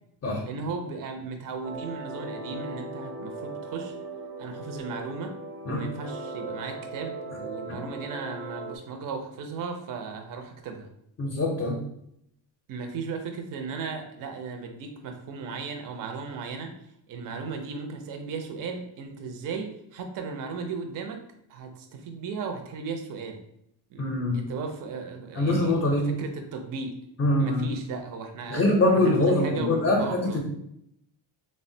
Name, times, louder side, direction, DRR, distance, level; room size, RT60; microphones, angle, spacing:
voice 1, 0.5-3.9 4.4-5.4 5.7-10.9 12.7-16.7 17.1-21.2 21.5-23.4 23.9-27.0 27.4-28.6 28.9-30.4, right 4 dB, 45° right, 4 dB, 0.4 m, -36 dB
sound 1, 1.6-8.8, right 3 dB, 80° right, 0.8 m, -38 dB
voice 2, 11.2-11.8 24.0-24.4 25.3-26.1 27.2-27.7 28.5-30.4, left 2 dB, 30° left, -2 dB, 0.5 m, -23 dB
3.4 x 2.1 x 2.6 m, 0.75 s
cardioid pair, 125°, 48 cm